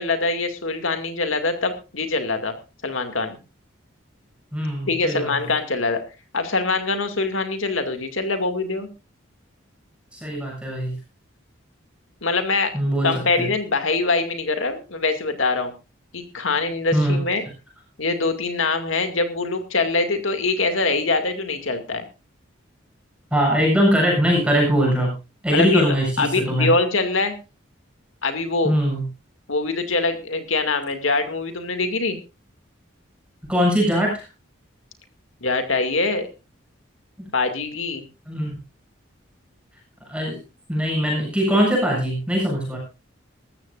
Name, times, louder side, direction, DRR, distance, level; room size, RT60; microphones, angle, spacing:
voice 1, 0.0-2.5 2.8-3.4 4.8-6.0 6.3-8.9 12.2-12.7 13.0-15.7 16.1-17.4 18.0-22.0 25.5-25.8 26.2-27.4 28.2-28.7 29.5-32.2 35.4-36.3 37.3-38.0, left 3 dB, 80° left, 7 dB, 2.3 m, -23 dB
voice 2, 4.5-5.3 10.1-11.0 12.7-13.1 13.4-13.5 16.9-17.2 23.3-25.1 25.4-26.7 28.6-29.1 33.5-34.2 37.2-37.3 38.3-38.5 40.1-40.4 40.7-42.8, equal, 5° right, -2 dB, 7.4 m, -21 dB
19.5 x 14.0 x 2.5 m, 0.28 s
head